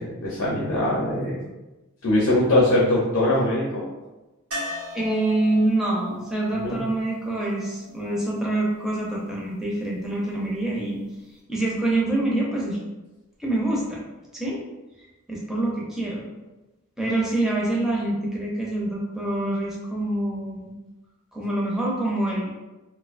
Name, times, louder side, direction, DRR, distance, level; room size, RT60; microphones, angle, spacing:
voice 1, 0.0-1.4 2.0-3.9 6.5-6.8, left 1 dB, 65° left, -5 dB, 0.6 m, -22 dB
sound 1, 4.5-8.4 11.0-11.1 11.4-11.5, left 1 dB, 75° right, 0.7 m, -38 dB
voice 2, 4.9-11.0 11.5-12.8 13.4-14.0 14.3-14.6 15.3-16.2 17.0-20.7 21.3-22.5, right 1 dB, ahead, -4 dB, 0.4 m, -26 dB
2.5 x 2.1 x 2.4 m, 1.1 s
head